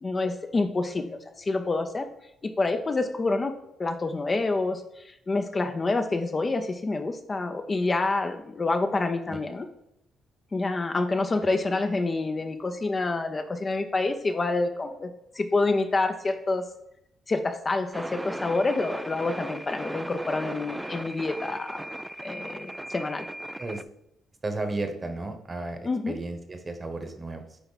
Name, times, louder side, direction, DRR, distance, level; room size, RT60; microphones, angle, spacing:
voice 1, 0.0-2.1 2.4-3.5 3.8-9.7 10.5-16.6 17.3-21.8 22.2-23.3 25.8-26.1, left 3 dB, 30° left, 6 dB, 0.6 m, -27 dB
sound 1, 17.9-23.8, right 1 dB, 10° right, 0.3 m, -37 dB
voice 2, 24.4-25.8 26.1-27.6, right 2 dB, 25° right, 7 dB, 1.1 m, -33 dB
9.9 x 3.4 x 4.1 m, 0.81 s
cardioid pair, 90°, 0 cm